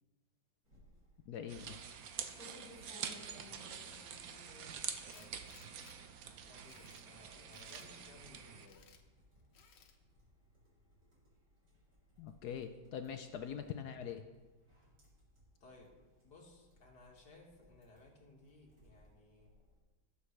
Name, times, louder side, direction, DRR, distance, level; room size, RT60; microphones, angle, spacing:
sound 1, 0.6-19.8, left 1 dB, 45° right, 3.7 m, -63 dB
voice 1, 1.3-1.8 12.2-14.3, left 8 dB, 75° left, 7 dB, 0.9 m, -43 dB
sound 2, 1.5-8.7, right 7 dB, 65° right, 0.9 m, -46 dB
voice 2, 2.8-4.7 5.1-5.7 6.5-8.9 15.6-15.9 16.2-19.5, left 2 dB, 55° left, -1 dB, 2.4 m, -61 dB
Tools, 5.1-6.0 6.4-7.1 7.5-7.9 8.6-9.0 9.5-10.0, left 7 dB, 90° left, 1.8 m, -62 dB
18.0 x 7.0 x 3.3 m, 1.2 s
omnidirectional pair, 2.2 m